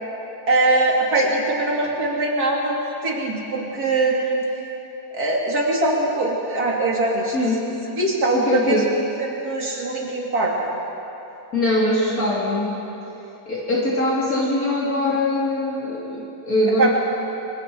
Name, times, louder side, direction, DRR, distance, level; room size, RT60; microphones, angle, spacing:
voice 1, 0.5-2.8 3.0-4.4 5.1-7.4 8.0-8.8 9.2-10.5 16.8-17.0, right 2 dB, 70° right, -2 dB, 3.4 m, -22 dB
voice 2, 7.3-7.7 8.3-8.9 11.5-12.7 13.5-17.0, left 1 dB, 65° left, -5 dB, 3.2 m, -22 dB
26.0 x 24.0 x 4.7 m, 3.0 s
omnidirectional pair, 1.7 m